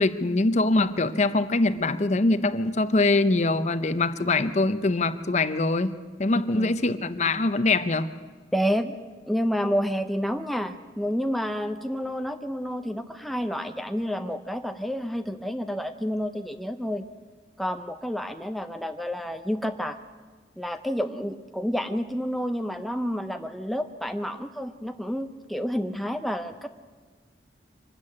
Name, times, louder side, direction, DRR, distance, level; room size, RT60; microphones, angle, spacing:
voice 1, 0.0-8.1, left 2 dB, 40° left, 12 dB, 0.7 m, -23 dB
voice 2, 8.5-9.0 9.3-17.0 17.6-20.0 20.6-26.7, equal, ahead, 7 dB, 0.5 m, -29 dB
24.5 x 13.0 x 8.7 m, 1.5 s
head